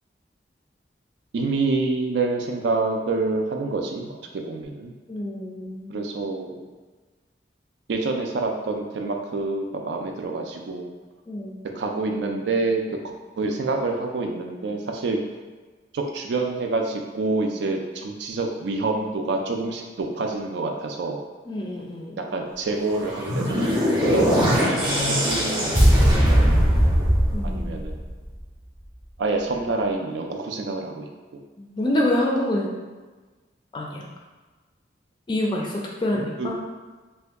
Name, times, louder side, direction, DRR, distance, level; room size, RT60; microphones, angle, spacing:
voice 1, 1.3-4.9 5.9-6.7 7.9-10.9 11.7-12.8 13.4-15.2 15.9-21.2 22.2-27.1 27.4-27.9 29.2-31.4 36.1-36.5, right 3 dB, 70° right, 2 dB, 0.4 m, -27 dB
voice 2, 5.1-6.1 11.3-11.6 21.5-22.2 27.3-27.8 31.6-32.7 33.7-34.0 35.3-36.5, left 1 dB, 25° left, -2 dB, 0.4 m, -27 dB
sound 1, 22.9-28.2, equal, 25° right, 0.7 m, -20 dB
2.6 x 2.2 x 3.4 m, 1.3 s
head